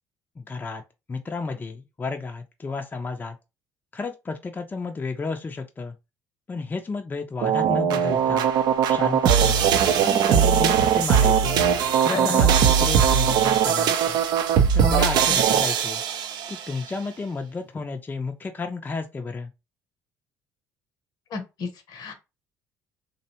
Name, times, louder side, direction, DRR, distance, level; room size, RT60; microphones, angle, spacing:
voice 1, 0.4-0.8 1.1-3.4 3.9-5.9 6.5-8.5 8.9-11.6 12.0-14.2 14.7-16.0 16.5-19.5, left 4 dB, 25° left, 0.4 m, -32 dB
sound 1, 7.4-16.6, right 8 dB, 65° right, 0.4 m, -20 dB
voice 2, 12.1-12.4 14.9-15.1 21.3-22.1, left 5 dB, 65° left, 0.8 m, -32 dB
2.6 x 2.1 x 2.8 m
hypercardioid pair, 60°, 8 cm